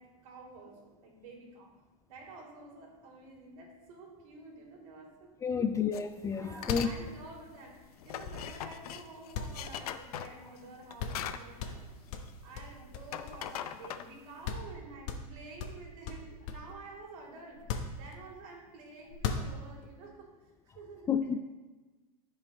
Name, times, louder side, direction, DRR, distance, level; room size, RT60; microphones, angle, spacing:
voice 1, 0.0-1.7 2.1-5.7 6.4-12.1 12.4-17.7 17.9-20.3 20.7-21.3, right 3 dB, 70° right, -2 dB, 3.3 m, -50 dB
voice 2, 5.4-6.9 21.1-21.4, left 6 dB, 15° left, 8 dB, 0.3 m, -30 dB
sound 1, 5.9-6.1 6.5-6.9 7.3-12.6 12.9-14.5, left 10 dB, 85° left, 0.6 m, -41 dB
sound 2, 6.3-6.4 6.6-8.8 9.3-10.4 10.7-10.8 11.0-11.3 11.6-13.7 14.1-14.2 14.4-14.7 15.0-16.8 17.5-18.5 19.1-19.9, left 5 dB, 60° left, 1.1 m, -38 dB
14.5 x 5.6 x 3.2 m, 1.2 s
supercardioid pair, 130°, 19 cm